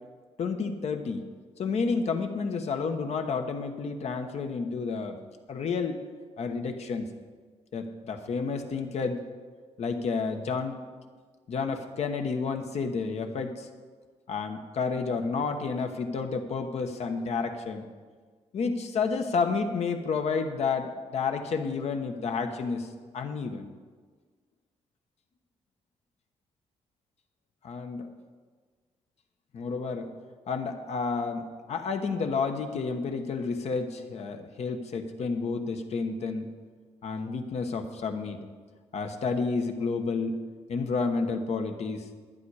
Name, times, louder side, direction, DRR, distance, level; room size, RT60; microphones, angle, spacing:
voice 1, 0.4-1.3 1.6-5.2 5.5-6.0 6.4-7.1 7.7-9.2 9.8-10.8 11.5-13.7 14.3-17.9 18.5-22.9 23.1-23.7 27.6-28.1 29.5-30.1 30.5-36.5 37.0-38.5 38.9-40.4 40.7-42.1, left 4 dB, 65° left, 5 dB, 1.1 m, -30 dB
11.5 x 10.0 x 4.8 m, 1.5 s
cardioid pair, 90°, 12 cm